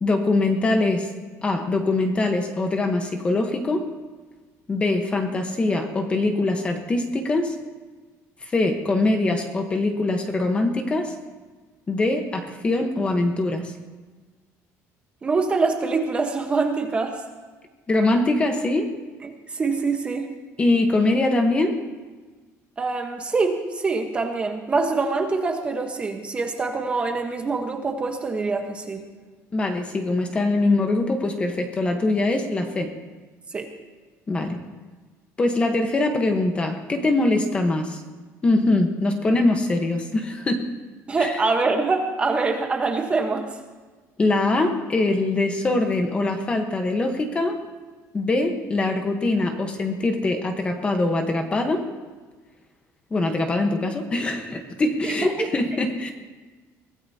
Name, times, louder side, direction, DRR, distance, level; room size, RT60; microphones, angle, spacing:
voice 1, 0.0-1.1 1.4-3.8 4.7-7.5 8.4-11.1 11.9-13.7 17.9-18.9 20.6-21.8 29.5-32.9 34.3-34.6 35.4-38.0 38.4-40.6 41.2-41.4 44.2-47.6 48.1-51.8 53.1-56.1, left 2 dB, 20° left, 5 dB, 1.1 m, -23 dB
voice 2, 15.2-17.2 19.2-20.3 22.8-29.0 33.5-33.7 41.1-43.5 55.0-55.5, right 3 dB, 20° right, 4 dB, 1.2 m, -24 dB
23.0 x 17.0 x 2.8 m, 1.3 s
cardioid pair, 175°, 6 cm